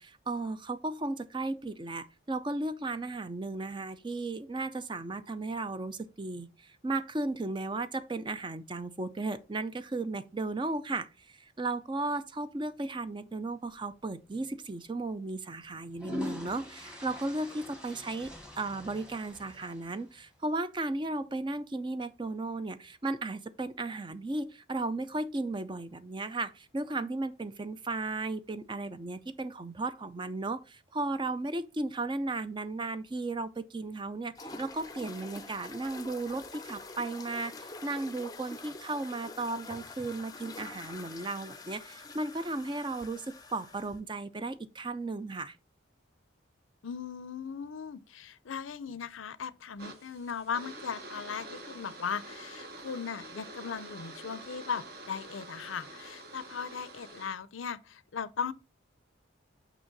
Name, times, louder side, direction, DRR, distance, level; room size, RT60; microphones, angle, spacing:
voice 1, 0.0-45.6, right 2 dB, 25° right, 0.5 m, -35 dB
sound 1, 14.3-14.5 15.6-20.2, left 1 dB, 5° right, 1.3 m, -43 dB
sound 2, 34.3-44.0, left 3 dB, 20° left, 0.6 m, -46 dB
voice 2, 46.8-58.5, left 6 dB, 85° left, 0.6 m, -38 dB
sound 3, 49.8-57.3, right 2 dB, 50° right, 1.3 m, -47 dB
6.1 x 5.6 x 4.0 m
head